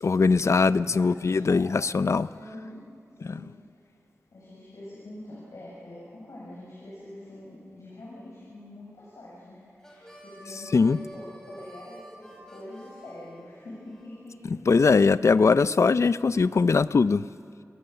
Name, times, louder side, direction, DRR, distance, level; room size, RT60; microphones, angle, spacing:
voice 1, 0.0-2.3 10.7-11.0 14.7-17.2, left 4 dB, 65° left, 15 dB, 0.5 m, -21 dB
voice 2, 0.9-1.8 2.3-2.8 3.1-3.5 4.3-14.6, left 1 dB, 85° left, -7 dB, 7.2 m, -44 dB
Harmonica, 9.8-14.1, equal, 10° left, 5.4 m, -48 dB
28.0 x 20.5 x 6.9 m, 2.3 s
wide cardioid pair, 65°, 5 cm